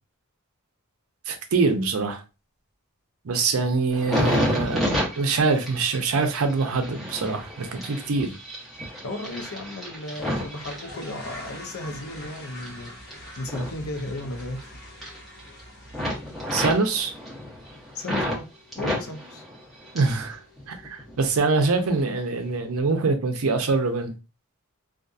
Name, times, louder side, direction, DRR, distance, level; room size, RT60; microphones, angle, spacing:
voice 1, 1.3-2.2 3.2-8.3 16.5-17.1 19.9-20.4 20.7-24.1, right 4 dB, 70° right, 0.5 m, -24 dB
sound 1, 3.8-3.9 4.1-4.6 4.9-5.0 5.5-5.6 5.9-6.0 7.6-7.8 8.4-8.6 9.1-9.2 10.0-21.3, equal, 45° left, 1.2 m, -46 dB
sound 2, 3.9-11.6 12.0-14.6 14.9-15.6 15.9-18.4 18.7-20.3 20.6-21.3 21.9-22.1, equal, ahead, 0.8 m, -31 dB
voice 2, 9.0-14.8 17.9-18.5 18.8-19.4, left 2 dB, 75° left, 0.6 m, -35 dB
2.6 x 2.4 x 2.3 m
head